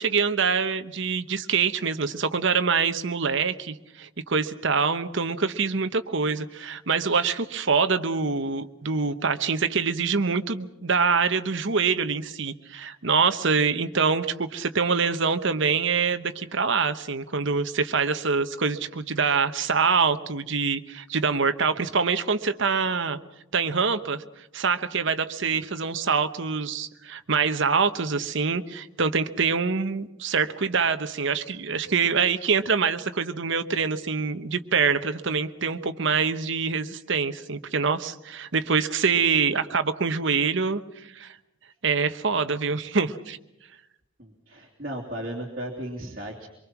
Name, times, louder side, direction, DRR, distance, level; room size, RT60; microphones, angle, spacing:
voice 1, 0.0-23.2 23.5-24.2 24.5-41.4 41.8-43.4, right 5 dB, 60° right, 10 dB, 1.0 m, -25 dB
voice 2, 44.2-46.5, right 1 dB, 40° right, -3 dB, 3.0 m, -35 dB
24.5 x 23.5 x 6.0 m, 0.90 s
head